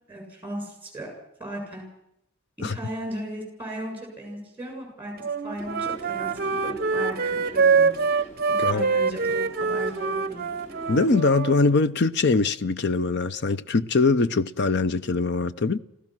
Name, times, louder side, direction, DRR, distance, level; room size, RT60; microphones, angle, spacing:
voice 1, 0.1-1.1 1.4-1.9 2.7-5.1 5.4-7.9 8.5-10.4, right 1 dB, 10° right, 7.2 m, -36 dB
Wind instrument woodwind instrument, 5.2-11.6, right 5 dB, 45° right, 0.7 m, -25 dB
sound 1, 5.6-11.2, right 1 dB, 30° left, 3.4 m, -42 dB
voice 2, 10.9-15.8, left 3 dB, 55° left, 0.7 m, -22 dB
28.0 x 15.0 x 6.2 m
head